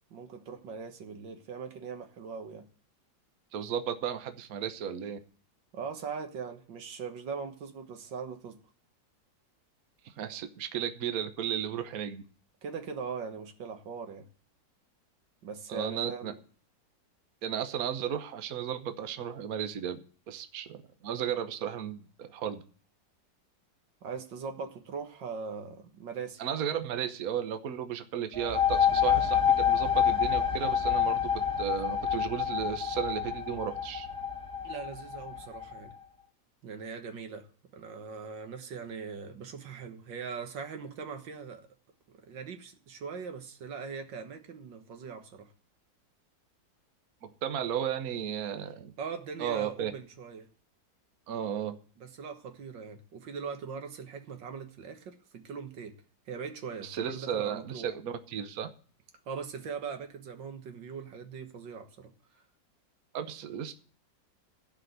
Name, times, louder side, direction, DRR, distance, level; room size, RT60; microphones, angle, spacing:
voice 1, 0.1-2.7 5.7-8.6 12.6-14.3 15.4-16.4 24.0-26.4 34.6-35.9 36.6-37.5 37.7-41.6 42.2-45.5 49.0-50.5 52.0-55.9 56.3-57.9 59.3-62.1, right 5 dB, 90° right, 6 dB, 2.1 m, -40 dB
voice 2, 3.5-5.2 10.0-12.2 15.7-16.3 17.4-20.0 20.3-22.6 26.4-31.2 31.6-34.1 47.2-48.9 49.4-49.9 51.3-51.7 56.8-58.7 63.1-63.7, right 9 dB, 55° right, 8 dB, 1.3 m, -34 dB
sound 1, 28.3-35.8, left 8 dB, 15° right, 1.0 m, -28 dB
15.5 x 5.1 x 8.0 m, 0.42 s
omnidirectional pair, 1.9 m